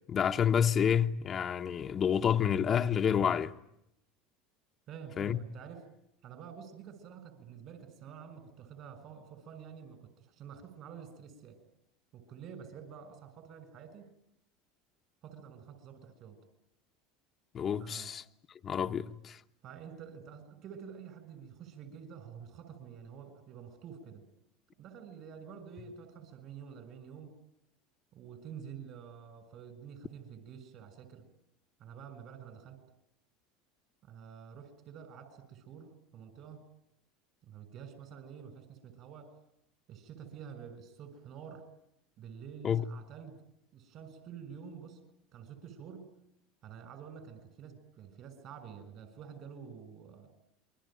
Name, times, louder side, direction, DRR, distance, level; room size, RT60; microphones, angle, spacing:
voice 1, 0.1-3.5 5.2-5.4 17.5-18.2 18.6-19.4 42.6-42.8, left 8 dB, 35° left, 1.1 m, -29 dB
voice 2, 4.9-5.8 6.2-11.6 12.1-14.1 15.2-16.4 17.8-18.1 19.6-24.3 24.8-27.4 28.1-31.3 31.8-32.8 34.0-36.7 37.4-39.3 39.9-41.7 42.2-43.4 43.7-45.0 45.3-46.1 46.6-50.3, right 7 dB, 55° right, 6.9 m, -49 dB
28.0 x 23.0 x 9.1 m
hypercardioid pair, 90°, 0 cm